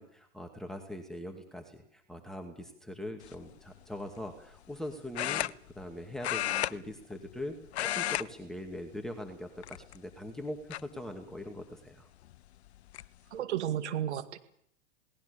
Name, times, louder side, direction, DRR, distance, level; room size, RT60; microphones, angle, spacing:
voice 1, 0.0-12.1, left 1 dB, ahead, 3 dB, 2.4 m, -42 dB
Camera Focus, 3.2-3.5 5.1-5.9 6.2-7.4 7.7-8.3 8.6-8.8 9.6-10.1 10.7-10.8 12.3-12.4 12.7-13.1, left 13 dB, 65° left, 0.9 m, -33 dB
voice 2, 13.3-14.4, right 10 dB, 70° right, 8 dB, 2.3 m, -33 dB
28.0 x 19.5 x 7.0 m, 0.70 s
hypercardioid pair, 110°, 36 cm